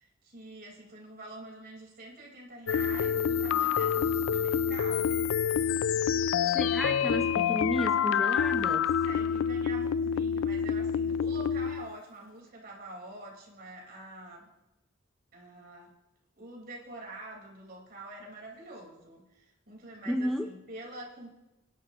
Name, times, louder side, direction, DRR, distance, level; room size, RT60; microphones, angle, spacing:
voice 1, 0.0-5.3 8.9-14.5 15.3-15.9 16.4-21.3, right 2 dB, 50° right, -2 dB, 4.2 m, -46 dB
sound 1, 2.7-12.0, left 7 dB, 70° left, 0.4 m, -27 dB
voice 2, 6.4-8.9 20.1-20.5, equal, ahead, 5 dB, 0.5 m, -33 dB
29.0 x 11.5 x 2.9 m, 0.98 s
head